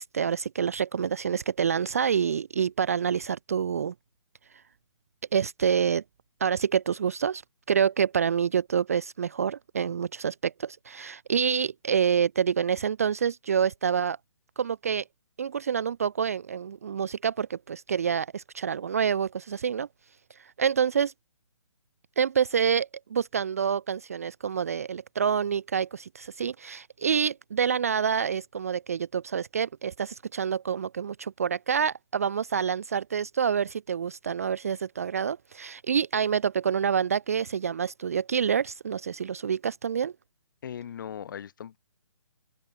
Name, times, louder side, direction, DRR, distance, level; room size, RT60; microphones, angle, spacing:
voice 1, 0.0-3.9 5.3-6.0 6.4-7.4 7.7-14.2 14.6-15.0 15.4-19.9 20.6-21.1 22.2-40.1, right 7 dB, 30° right, 0.4 m, -27 dB
voice 2, 40.6-41.8, left 9 dB, 40° left, 6.0 m, -38 dB
open air
hypercardioid pair, 165°, 16 cm